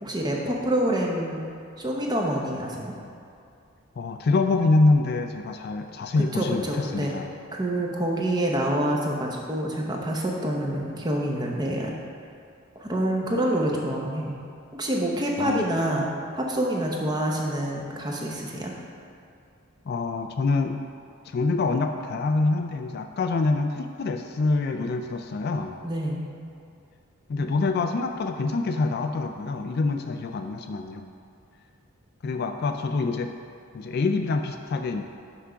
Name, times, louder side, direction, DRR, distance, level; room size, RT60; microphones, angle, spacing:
voice 1, 0.0-1.4 1.8-2.9 6.3-7.1 7.5-11.9 12.8-14.4 14.7-18.7 25.8-26.3, right 1 dB, 20° right, -1 dB, 0.7 m, -27 dB
voice 2, 4.0-7.3 15.4-15.7 19.9-20.8 21.2-25.8 27.3-31.1 32.2-33.3 33.7-35.0, left 3 dB, 45° left, 6 dB, 0.3 m, -25 dB
5.9 x 4.9 x 5.6 m, 2.5 s
head